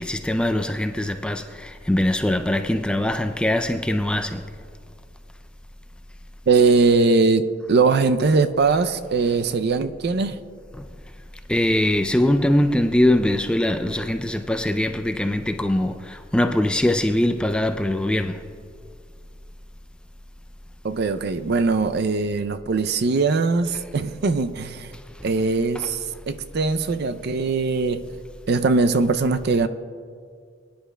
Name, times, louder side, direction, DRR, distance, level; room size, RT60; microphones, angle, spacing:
voice 1, 0.0-4.5 8.6-8.7 10.7-10.9 11.5-18.5 23.7-23.9 24.9-25.3 25.7-26.0, left 1 dB, 5° left, 0.3 m, -22 dB
voice 2, 6.5-10.4 20.8-24.9 25.2-26.0 26.3-28.0 28.5-29.7, right 4 dB, 55° right, 0.5 m, -21 dB
22.0 x 10.5 x 2.2 m
head